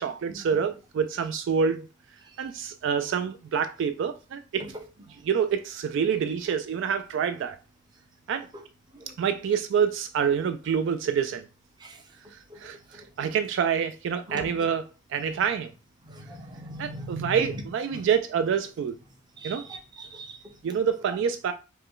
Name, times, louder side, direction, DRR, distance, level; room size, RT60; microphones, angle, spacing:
voice 1, 0.0-1.9 2.4-4.7 5.2-7.6 8.3-8.5 9.1-11.5 12.3-15.7 16.8-19.0 19.4-19.7 20.6-21.5, right 7 dB, 65° right, 0.3 m, -27 dB
voice 2, 16.1-17.4 19.4-20.4, right 1 dB, 20° right, 0.7 m, -39 dB
5.4 x 2.1 x 3.7 m
head